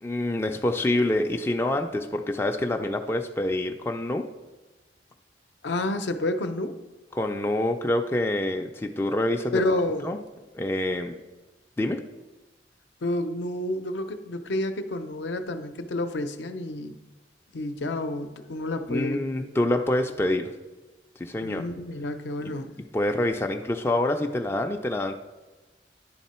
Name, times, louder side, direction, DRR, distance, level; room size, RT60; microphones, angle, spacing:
voice 1, 0.0-4.3 7.1-9.6 10.0-10.2 10.5-11.1 11.8-12.0 18.9-20.5 21.2-21.6 22.4-22.5 22.9-25.1, left 1 dB, 15° left, 4 dB, 0.3 m, -26 dB
voice 2, 5.6-6.8 9.5-10.2 13.0-17.0 17.5-19.3 21.4-22.7, left 1 dB, 75° left, 8 dB, 0.6 m, -29 dB
10.0 x 3.7 x 4.2 m, 1.1 s
head